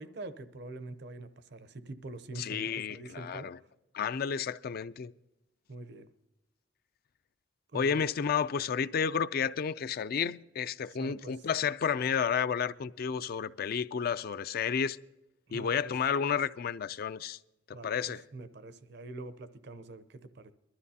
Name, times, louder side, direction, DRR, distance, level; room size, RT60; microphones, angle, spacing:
voice 1, 0.0-3.5 5.7-6.1 7.7-7.9 11.0-11.4 15.5-15.9 17.7-20.5, right 2 dB, 65° right, 0.7 m, -45 dB
voice 2, 2.4-3.6 3.9-5.1 7.7-15.0 15.5-17.4 17.7-18.2, left 7 dB, 55° left, 0.4 m, -31 dB
22.0 x 13.0 x 2.8 m
head